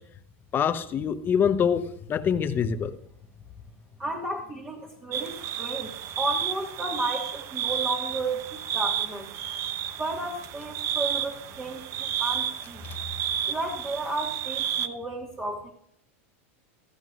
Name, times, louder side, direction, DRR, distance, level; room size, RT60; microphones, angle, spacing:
voice 1, 0.5-2.9, left 7 dB, 30° left, 10 dB, 0.8 m, -25 dB
voice 2, 4.0-5.9 6.2-8.4 8.7-9.3 10.0-12.8 13.5-15.7, right 2 dB, 20° right, -2 dB, 1.7 m, -33 dB
sound 1, 5.1-14.9, right 10 dB, 45° right, 0.8 m, -31 dB
16.5 x 13.0 x 2.4 m, 0.67 s
supercardioid pair, 125°, 7 cm